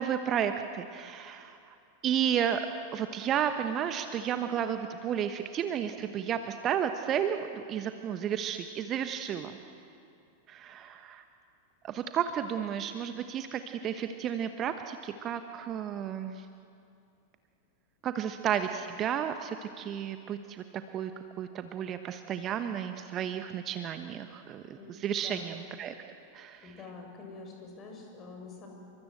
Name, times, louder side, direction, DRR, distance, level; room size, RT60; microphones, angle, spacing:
voice 1, 0.0-1.6 2.0-2.6 2.9-9.6 10.5-11.2 11.8-16.4 18.0-20.6 20.9-21.1 21.4-25.9 26.3-26.7, right 9 dB, 30° right, 8 dB, 1.2 m, -32 dB
voice 2, 25.2-25.6 26.6-28.7, left 4 dB, 30° left, 1 dB, 7.3 m, -46 dB
29.5 x 24.0 x 7.9 m, 2.5 s
figure-of-eight pair, 90°, 0 cm